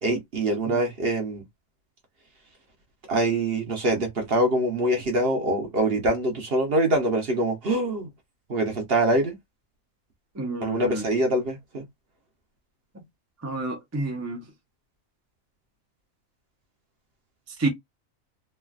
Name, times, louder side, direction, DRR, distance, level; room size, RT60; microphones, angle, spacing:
voice 1, 0.0-1.4 3.1-8.1 8.5-9.3 10.6-11.8, right 1 dB, 50° right, 0.9 m, -24 dB
voice 2, 10.3-11.1 12.9-13.0 13.4-14.4 17.6-17.7, right 2 dB, 15° right, 0.6 m, -29 dB
3.2 x 2.4 x 2.3 m
omnidirectional pair, 1.4 m